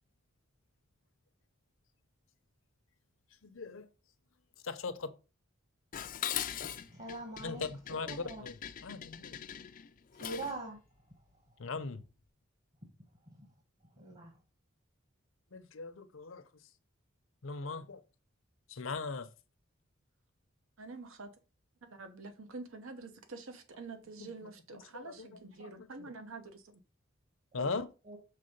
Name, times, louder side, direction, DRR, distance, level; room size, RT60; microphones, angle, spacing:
voice 1, 3.4-3.9 4.6-5.1 7.4-9.4 11.6-12.0 15.5-16.4 17.4-18.0 18.7-19.3 24.2-24.3 24.9-26.1 27.5-27.9, left 4 dB, 70° left, 0.7 m, -40 dB
Dishes pots and pans, 5.9-10.6, left 10 dB, 40° left, 0.4 m, -41 dB
voice 2, 6.9-7.6 8.0-8.4 10.2-10.8 14.0-14.3 27.6-27.7 28.1-28.2, right 2 dB, 40° right, 1.5 m, -42 dB
voice 3, 20.8-21.3 21.9-26.8, right 3 dB, 80° right, 1.0 m, -47 dB
6.7 x 3.5 x 5.3 m
head